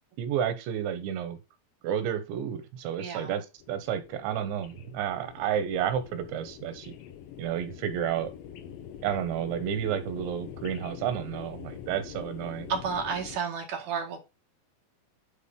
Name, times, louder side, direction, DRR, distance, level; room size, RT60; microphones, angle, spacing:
voice 1, 0.2-1.4 1.8-6.9 7.4-8.3 9.0-12.7, right 9 dB, 90° right, 3.5 m, -31 dB
voice 2, 3.0-3.3 12.7-14.2, right 6 dB, 55° right, 3.0 m, -31 dB
sound 1, 3.6-13.4, left 9 dB, 85° left, 1.9 m, -44 dB
10.5 x 4.3 x 3.7 m
omnidirectional pair, 5.0 m